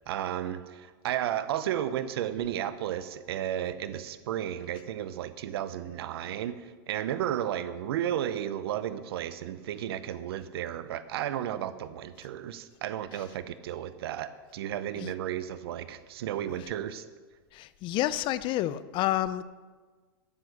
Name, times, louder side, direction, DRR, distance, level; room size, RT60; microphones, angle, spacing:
voice 1, 0.1-17.0, right 11 dB, 75° right, 13 dB, 0.8 m, -33 dB
voice 2, 17.5-19.4, left 14 dB, 40° left, 15 dB, 0.6 m, -29 dB
12.5 x 8.4 x 6.7 m, 1.4 s
hypercardioid pair, 120°, 13 cm